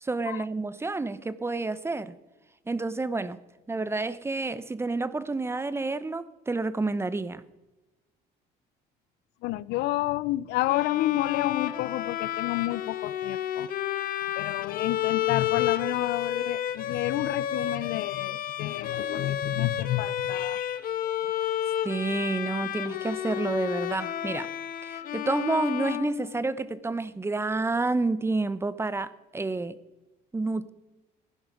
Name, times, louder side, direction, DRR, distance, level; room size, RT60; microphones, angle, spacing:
voice 1, 0.0-2.1 2.7-3.4 3.7-7.4 21.8-24.5 24.8-29.8 30.3-30.7, right 3 dB, 15° right, 0.7 m, -29 dB
voice 2, 9.4-13.7 14.4-20.8, left 17 dB, 85° left, 0.4 m, -30 dB
Bowed string instrument, 10.7-26.7, left 11 dB, 60° left, 1.0 m, -31 dB
16.0 x 10.5 x 5.0 m
cardioid pair, 110°, 17 cm